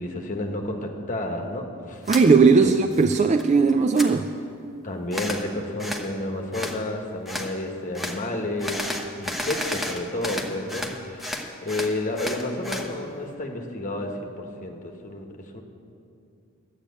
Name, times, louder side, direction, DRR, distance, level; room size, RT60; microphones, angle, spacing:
voice 1, 0.0-2.1 2.6-2.7 4.8-15.3 15.5-15.6, left 1 dB, 35° left, 2 dB, 1.3 m, -31 dB
sound 1, 2.0-2.2 2.7-3.4 3.7-4.1 5.1-5.4 5.8-6.1 6.5-6.8 7.2-7.5 7.9-8.2 8.6-10.9 11.2-12.9, left 1 dB, ahead, 0.9 m, -32 dB
voice 2, 2.1-4.3, right 4 dB, 30° right, 7 dB, 0.3 m, -18 dB
12.0 x 8.3 x 8.3 m, 2.7 s
head